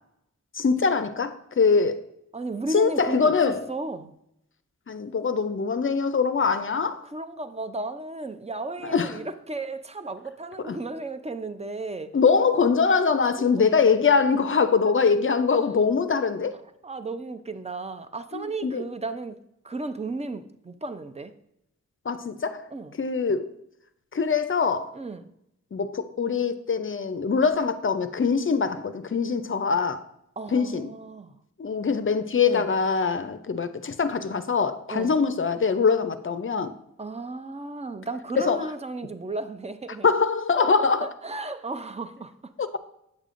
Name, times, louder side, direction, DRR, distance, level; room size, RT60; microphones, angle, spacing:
voice 1, 0.5-2.0 2.7-3.7 4.9-7.0 8.8-9.2 10.6-10.8 12.1-16.5 18.3-18.8 22.1-22.7 23.0-23.5 24.1-24.9 25.7-30.0 30.5-30.9 31.6-36.7 38.4-38.7 40.0-41.1 42.6-42.8, left 5 dB, 45° left, 0.5 m, -23 dB
voice 2, 2.3-4.1 7.1-12.1 13.4-13.7 16.8-19.4 19.6-21.3 22.7-22.9 24.9-25.3 30.4-31.4 32.5-32.7 34.9-35.2 37.0-40.1 40.8-42.5, right 2 dB, 20° right, 0.5 m, -34 dB
8.3 x 6.6 x 2.5 m
wide cardioid pair, 80°, 30 cm